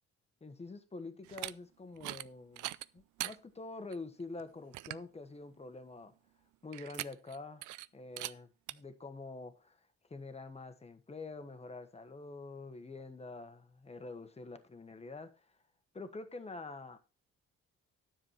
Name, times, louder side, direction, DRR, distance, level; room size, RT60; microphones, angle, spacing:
voice 1, 0.4-6.1 6.6-9.8 10.1-15.4 15.9-17.0, left 3 dB, 20° left, 1.4 m, -46 dB
sound 1, 1.2-1.5 2.0-2.3 2.6-3.4 3.9-4.0 4.4-4.5 4.7-5.1 6.7-7.4 7.6-7.9 8.2-8.3 8.7-8.8, right 17 dB, 90° right, 0.5 m, -41 dB
9.9 x 7.4 x 4.6 m
cardioid pair, 90°, 30 cm